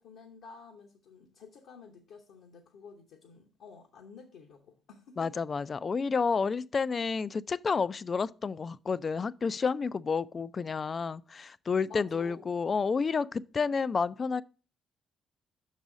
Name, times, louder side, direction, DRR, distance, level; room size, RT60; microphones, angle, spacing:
voice 1, 0.0-5.4 11.9-12.5, left 5 dB, 70° left, 0.9 m, -51 dB
voice 2, 5.2-14.4, left 5 dB, 40° left, 0.3 m, -30 dB
6.1 x 4.1 x 6.0 m
hypercardioid pair, 45°, 0 cm